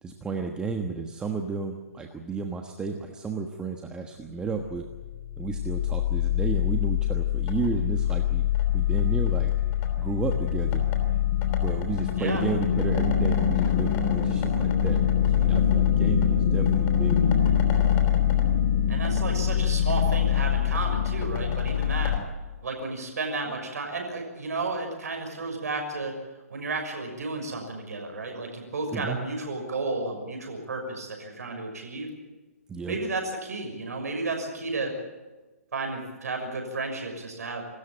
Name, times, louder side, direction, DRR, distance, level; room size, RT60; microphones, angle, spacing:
voice 1, 0.0-4.8 5.4-9.5 10.0-10.8 11.5-15.0 15.4-17.3 28.9-29.2 32.7-33.0, right 4 dB, 10° right, 4 dB, 1.2 m, -33 dB
sound 1, 4.8-22.2, left 9 dB, 25° left, 3.2 m, -24 dB
voice 2, 18.9-22.2 22.6-26.2 26.5-32.1 32.9-35.0 35.7-37.6, right 3 dB, 80° right, 3 dB, 6.2 m, -32 dB
26.5 x 13.5 x 8.9 m, 1.3 s
hypercardioid pair, 150°, 8 cm